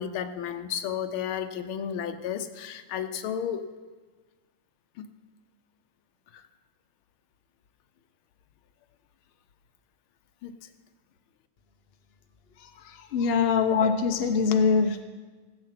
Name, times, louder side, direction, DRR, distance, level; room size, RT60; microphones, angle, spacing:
voice 1, 0.0-3.6 5.0-5.1 6.3-6.5 10.4-10.6, left 8 dB, 85° left, 9 dB, 1.6 m, -33 dB
voice 2, 13.1-15.0, left 5 dB, 50° left, 6 dB, 0.7 m, -23 dB
16.5 x 7.9 x 5.8 m, 1.4 s
omnidirectional pair, 2.2 m